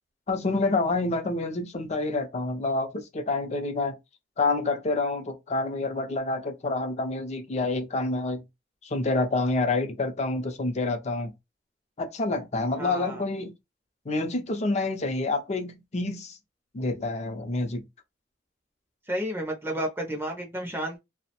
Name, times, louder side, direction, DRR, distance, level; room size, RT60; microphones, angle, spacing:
voice 1, 0.3-3.9 4.4-8.4 8.8-11.3 12.0-13.5 14.1-16.4 16.7-17.8, left 2 dB, 35° left, 0.5 m, -28 dB
voice 2, 12.7-13.2 19.1-21.0, right 1 dB, 15° right, 0.5 m, -31 dB
2.5 x 2.0 x 2.8 m
head